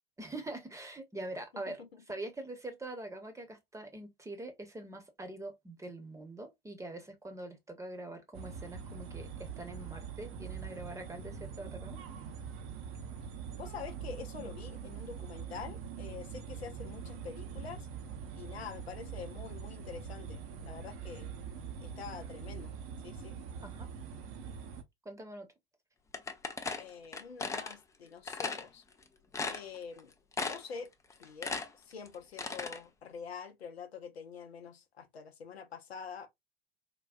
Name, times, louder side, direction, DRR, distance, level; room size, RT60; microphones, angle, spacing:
voice 1, 0.2-1.8 2.1-12.0 23.6-23.9 25.0-25.5, right 2 dB, 10° right, 0.9 m, -44 dB
voice 2, 1.5-2.0 13.5-17.9 18.3-21.4 21.8-22.7 23.0-23.4 26.8-28.8 29.5-30.1 30.5-30.9 31.2-36.3, left 6 dB, 85° left, 0.6 m, -46 dB
sound 1, 8.3-24.8, right 7 dB, 45° right, 0.7 m, -44 dB
sound 2, 26.1-27.7 28.3-28.6 29.0-29.1 29.3-30.0 30.3-30.8 31.1-32.8, left 4 dB, 10° left, 0.4 m, -36 dB
3.7 x 2.3 x 2.3 m
figure-of-eight pair, 80°, 30 cm